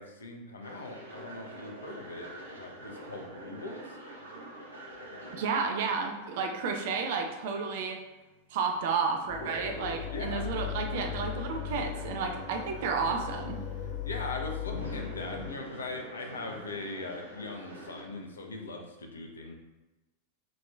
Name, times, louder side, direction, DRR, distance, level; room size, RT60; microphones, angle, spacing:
voice 1, 0.0-4.0 10.1-10.5 14.0-19.5, left 2 dB, 70° left, 3 dB, 0.6 m, -40 dB
sound 1, 0.6-18.0, right 1 dB, 85° right, 0.8 m, -46 dB
voice 2, 5.3-8.0 8.5-13.6, right 5 dB, 55° right, 3 dB, 0.6 m, -31 dB
sound 2, 9.3-15.5, left 9 dB, 35° left, 0.4 m, -38 dB
6.1 x 3.0 x 2.3 m, 1.1 s
figure-of-eight pair, 90°, 0 cm